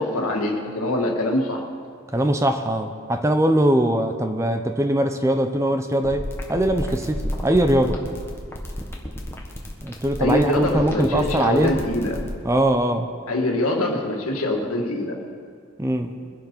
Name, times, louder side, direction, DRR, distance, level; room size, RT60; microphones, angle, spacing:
voice 1, 0.0-1.7 10.2-12.2 13.3-15.2, left 1 dB, 85° left, 1 dB, 2.0 m, -24 dB
voice 2, 2.1-8.0 9.8-11.8 12.4-13.1 15.8-16.1, right 1 dB, 15° right, 7 dB, 0.6 m, -21 dB
sound 1, 5.9-12.3, equal, 10° left, 1.3 m, -31 dB
22.5 x 7.5 x 5.5 m, 2.2 s
head